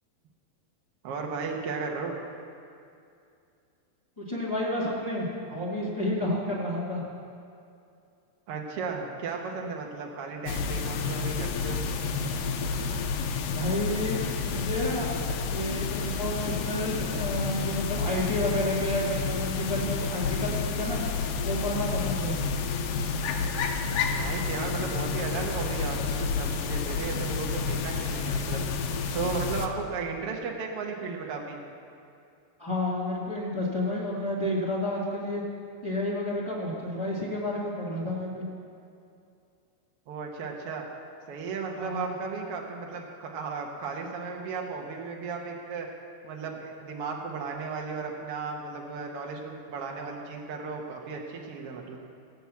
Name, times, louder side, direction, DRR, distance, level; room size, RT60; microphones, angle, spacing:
voice 1, 1.0-2.2 8.5-11.9 24.0-28.7 29.1-31.6 40.1-40.9 41.3-45.9 46.2-52.0, right 4 dB, 80° right, 0 dB, 1.3 m, -35 dB
voice 2, 4.2-7.0 13.5-15.1 15.5-21.0 21.4-22.4 32.6-35.4 35.8-38.4 41.8-42.1, left 1 dB, 25° left, -8 dB, 0.5 m, -30 dB
sound 1, 10.5-29.7, left 5 dB, 75° left, 2.1 m, -30 dB
17.5 x 5.9 x 8.3 m, 2.5 s
omnidirectional pair, 4.5 m